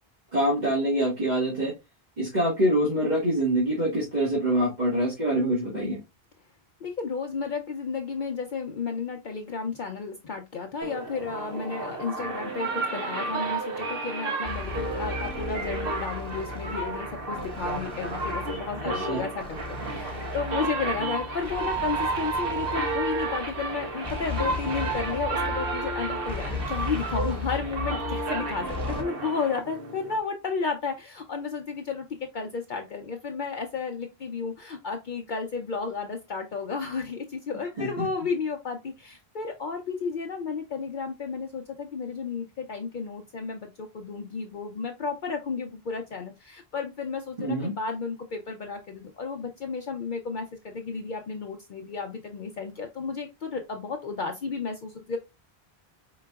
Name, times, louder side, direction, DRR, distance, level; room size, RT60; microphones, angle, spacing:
voice 1, 0.3-1.7 2.2-6.0 18.8-19.2 37.8-38.0 47.4-47.7, right 1 dB, 45° right, -6 dB, 1.7 m, -25 dB
voice 2, 6.8-55.2, left 5 dB, 55° left, 4 dB, 0.7 m, -33 dB
sound 1, 10.8-30.2, right 3 dB, 65° right, 1.0 m, -32 dB
sound 2, 14.4-29.0, left 3 dB, 5° left, 1.1 m, -37 dB
4.8 x 3.8 x 2.2 m, 0.24 s
omnidirectional pair, 1.0 m